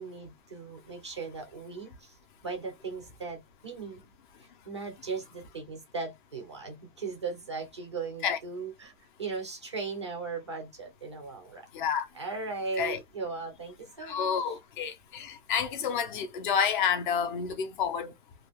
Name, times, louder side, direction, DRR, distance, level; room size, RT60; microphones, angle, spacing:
voice 1, 0.0-2.2 2.4-4.1 4.4-14.6, right 4 dB, 25° right, 0.3 m, -38 dB
voice 2, 11.7-12.1 12.8-13.0 14.0-18.1, left 7 dB, 35° left, 0.5 m, -29 dB
2.8 x 2.3 x 3.3 m
supercardioid pair, 180°, 42 cm